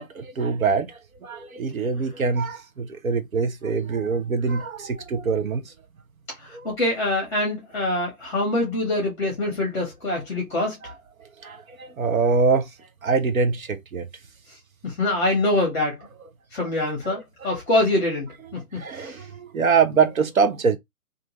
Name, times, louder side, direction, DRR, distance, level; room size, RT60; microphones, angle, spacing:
voice 1, 0.0-5.7 6.5-6.7 11.4-12.7 13.0-14.1 17.4-17.5 18.7-20.8, right 5 dB, 65° right, 0.7 m, -24 dB
voice 2, 6.4-10.8 14.8-16.0 16.5-19.1, left 2 dB, 5° left, 1.0 m, -25 dB
2.5 x 2.4 x 2.9 m
figure-of-eight pair, 150°, 44 cm